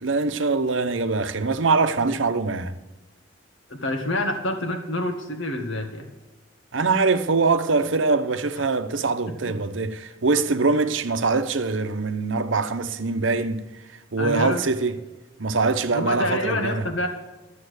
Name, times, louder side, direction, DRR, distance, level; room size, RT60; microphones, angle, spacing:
voice 1, 0.0-2.8 6.7-13.6 14.1-14.9 15.4-16.8, right 4 dB, 80° right, 0.8 m, -23 dB
voice 2, 3.7-6.1 9.4-9.5 14.2-14.6 15.9-17.1, left 1 dB, 85° left, 1.8 m, -27 dB
12.5 x 7.5 x 6.4 m
head